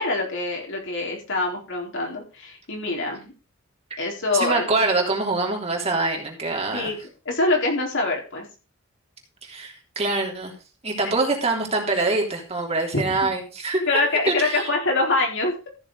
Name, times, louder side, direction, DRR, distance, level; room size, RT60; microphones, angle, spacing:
voice 1, 0.0-3.3 4.0-4.9 6.7-7.0 7.3-8.5 11.0-11.2 12.9-13.2 13.9-15.5, left 2 dB, 65° left, 0 dB, 4.2 m, -25 dB
voice 2, 4.3-6.9 9.4-10.5 10.8-13.8 14.3-14.7, right 3 dB, 30° right, 1 dB, 3.3 m, -24 dB
14.5 x 6.8 x 4.8 m, 0.33 s
head